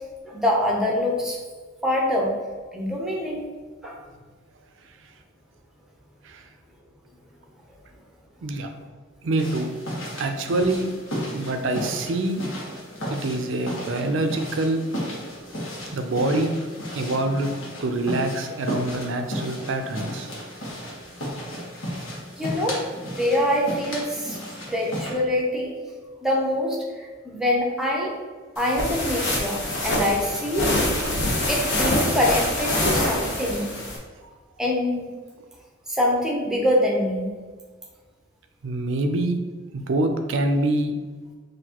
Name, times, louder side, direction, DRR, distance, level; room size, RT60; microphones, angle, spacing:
voice 1, 0.2-1.4 1.8-2.3 2.7-3.4 3.8-4.0 22.4-24.4 24.7-25.7 26.2-28.1 28.6-30.7 31.5-33.7 34.6-35.1 35.9-37.3, left 1 dB, 5° right, -2 dB, 0.7 m, -24 dB
voice 2, 9.2-9.7 10.2-10.9 11.3-12.4 13.1-14.8 15.9-16.5 16.9-17.5 17.8-20.3 38.6-39.4 39.7-40.9, right 2 dB, 70° right, 5 dB, 0.5 m, -25 dB
sound 1, 9.4-25.1, equal, 80° left, 1.3 m, -34 dB
sound 2, 28.6-34.0, left 1 dB, 60° left, 0.9 m, -25 dB
5.8 x 2.7 x 2.9 m, 1.4 s
head